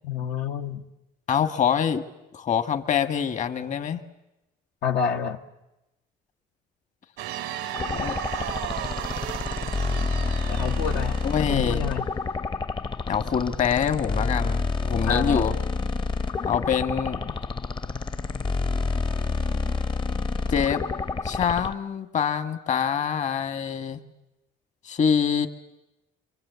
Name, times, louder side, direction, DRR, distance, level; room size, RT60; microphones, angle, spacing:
voice 1, 0.0-0.8 4.8-5.4 10.5-12.1 15.0-15.6, left 7 dB, 75° left, 3 dB, 1.2 m, -28 dB
voice 2, 1.3-2.0 2.3-4.0 7.9-8.2 11.2-11.8 13.1-15.5 16.4-17.3 20.5-20.8 21.2-24.0 24.8-25.5, left 7 dB, 45° left, 9 dB, 1.5 m, -25 dB
sound 1, 7.2-11.8, right 12 dB, 85° right, 0.9 m, -35 dB
sound 2, 7.7-21.7, left 4 dB, 30° left, 0.8 m, -28 dB
26.0 x 24.0 x 8.1 m, 0.94 s
cardioid pair, 110°, 17 cm